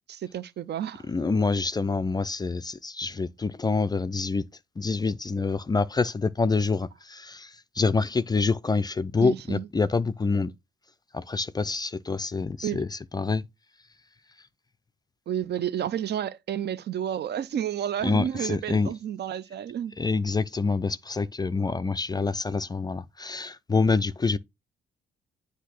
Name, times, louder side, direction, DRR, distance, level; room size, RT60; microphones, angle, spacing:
voice 1, 0.1-1.1 9.2-9.7 12.6-12.8 15.3-19.9, right 10 dB, 55° right, 0.5 m, -31 dB
voice 2, 1.1-4.5 4.8-10.5 11.1-13.4 18.0-18.9 20.0-24.4, left 4 dB, 20° left, 0.4 m, -26 dB
8.2 x 2.7 x 5.8 m
cardioid pair, 90°, 20 cm